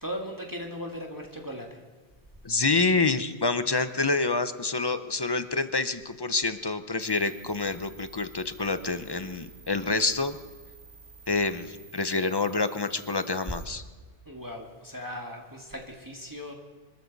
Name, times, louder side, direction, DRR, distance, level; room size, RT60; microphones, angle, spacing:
voice 1, 0.0-1.8 14.3-16.5, equal, 20° right, 0 dB, 1.8 m, -38 dB
voice 2, 2.4-10.4 11.3-13.8, left 3 dB, 25° left, 11 dB, 0.6 m, -27 dB
sound 1, 7.0-13.6, right 4 dB, 40° right, 2.1 m, -51 dB
26.5 x 13.0 x 4.0 m, 1.4 s
omnidirectional pair, 1.1 m